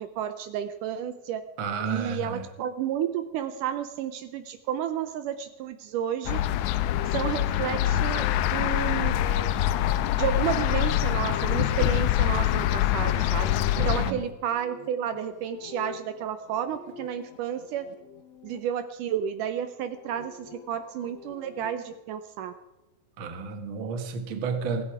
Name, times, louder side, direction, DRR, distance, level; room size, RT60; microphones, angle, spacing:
voice 1, 0.0-1.4 1.9-6.4 7.1-8.3 8.5-9.1 10.2-13.5 13.8-17.9 18.4-22.5, right 9 dB, 80° right, 9 dB, 2.2 m, -31 dB
voice 2, 1.6-2.4 13.7-14.2 23.2-24.8, right 5 dB, 45° right, 6 dB, 1.8 m, -31 dB
sound 1, 6.3-14.1, left 12 dB, 75° left, 1.8 m, -25 dB
sound 2, 6.7-18.6 19.7-22.0, left 5 dB, 60° left, 2.0 m, -46 dB
16.5 x 15.5 x 4.9 m, 1.0 s
omnidirectional pair, 4.0 m